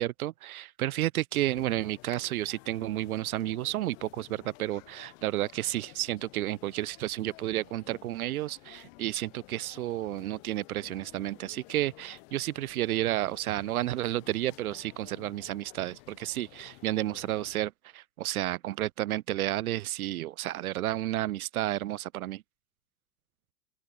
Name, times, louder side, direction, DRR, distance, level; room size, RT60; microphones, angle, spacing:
voice 1, 0.0-22.4, right 15 dB, 85° right, 0.6 m, -31 dB
sound 1, 1.3-17.6, left 27 dB, 65° left, 4.0 m, -53 dB
open air
hypercardioid pair, 75°, 42 cm